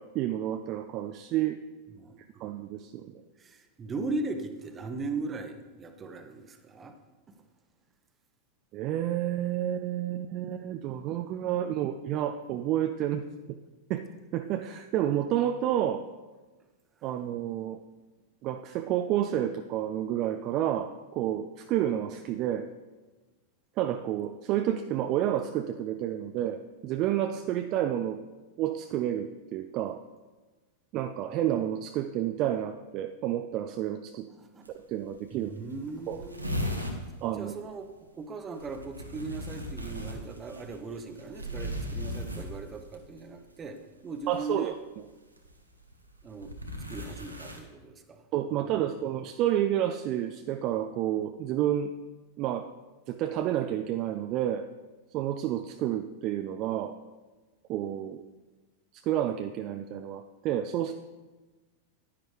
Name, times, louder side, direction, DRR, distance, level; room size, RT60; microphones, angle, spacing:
voice 1, 0.0-1.6 2.4-3.1 8.7-13.6 13.9-14.1 14.3-16.1 17.0-17.8 18.4-22.7 23.8-28.2 28.6-30.0 30.9-34.3 34.7-35.5 36.1-36.2 37.2-37.5 44.3-44.7 48.3-51.9 52.4-52.7 53.1-54.7 55.1-57.0 57.7-58.2 58.9-60.9, right 11 dB, 40° right, 8 dB, 0.4 m, -30 dB
voice 2, 1.9-2.4 3.4-6.9 34.4-34.7 35.3-36.8 37.4-37.9 38.2-43.8 44.0-44.7 46.2-46.5 46.9-48.2 48.5-48.7, right 3 dB, 20° right, 7 dB, 1.0 m, -38 dB
sound 1, 34.7-34.8 35.0-35.1 35.4-35.5 35.7-37.0 38.5-43.0 44.2-44.5 45.4-47.6, equal, 85° right, 1.1 m, -36 dB
10.5 x 10.0 x 3.3 m, 1.2 s
figure-of-eight pair, 90°, 0 cm